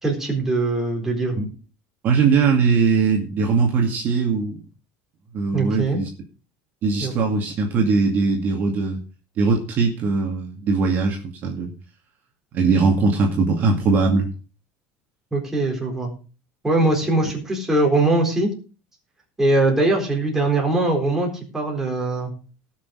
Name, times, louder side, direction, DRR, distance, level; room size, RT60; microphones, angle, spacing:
voice 1, 0.0-1.4 5.5-6.0 7.0-7.1 15.3-16.1 16.6-18.5 19.4-22.3, right 2 dB, 10° right, 0 dB, 4.1 m, -21 dB
voice 2, 2.0-4.6 5.3-6.1 6.8-9.0 9.4-11.7 12.5-14.3, right 4 dB, 40° right, 1 dB, 2.3 m, -20 dB
18.0 x 6.5 x 4.8 m, 0.35 s
cardioid pair, 160°, 5 cm